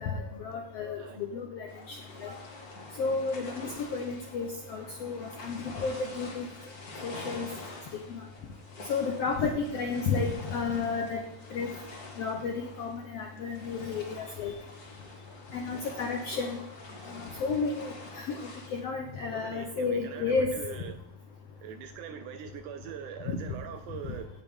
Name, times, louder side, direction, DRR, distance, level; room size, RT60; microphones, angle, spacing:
voice 1, 0.0-2.4 3.0-6.5 7.0-7.5 8.1-8.2 8.9-11.2 11.5-11.7 12.2-14.5 15.5-16.6 17.2-20.6 23.3-23.4, left 4 dB, 85° left, 3 dB, 1.4 m, -32 dB
sound 1, 1.7-18.8, left 2 dB, 35° left, 1.5 m, -46 dB
voice 2, 19.3-21.1 21.6-24.3, right 8 dB, 80° right, 8 dB, 1.9 m, -42 dB
16.5 x 6.1 x 3.7 m, 0.89 s
omnidirectional pair, 4.0 m